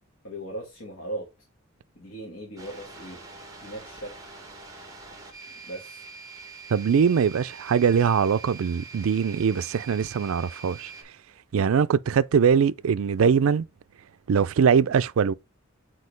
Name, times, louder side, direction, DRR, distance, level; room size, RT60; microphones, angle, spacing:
voice 1, 0.2-1.3 2.0-3.2 3.6-4.3 5.6-6.0, right 1 dB, 65° left, 1.7 m, -38 dB
sound 1, 2.6-11.0, right 4 dB, 15° right, 1.5 m, -44 dB
voice 2, 6.7-10.9 11.5-13.7 14.3-15.3, right 6 dB, 75° right, 0.4 m, -22 dB
6.4 x 4.4 x 3.3 m
head